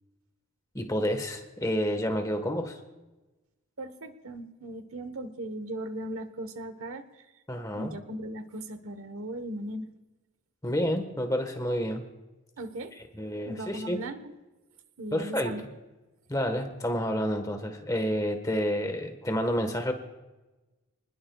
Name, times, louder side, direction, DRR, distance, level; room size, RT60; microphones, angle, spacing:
voice 1, 0.7-2.8 7.5-7.9 10.6-12.0 13.2-14.0 15.1-15.6 16.3-19.9, equal, 15° left, 6 dB, 1.4 m, -29 dB
voice 2, 3.8-7.3 7.7-10.0 12.6-13.0 13.4-14.3 15.0-15.6, right 1 dB, 75° right, 10 dB, 1.2 m, -38 dB
28.0 x 20.0 x 2.4 m, 1.1 s
head